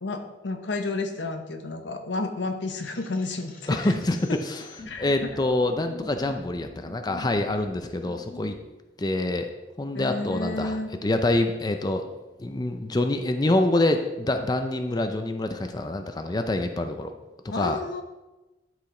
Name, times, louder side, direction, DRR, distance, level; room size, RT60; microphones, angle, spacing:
voice 1, 0.0-3.9 4.9-5.3 9.9-10.9 17.5-18.0, left 2 dB, 85° left, 5 dB, 0.9 m, -31 dB
sound 1, 2.8-8.6, left 2 dB, 50° left, 1.2 m, -46 dB
voice 2, 3.7-4.6 5.0-8.6 9.0-9.5 9.8-12.1 12.4-17.1 17.4-17.8, left 2 dB, 20° left, 6 dB, 0.5 m, -26 dB
11.5 x 4.9 x 3.8 m, 1.1 s
head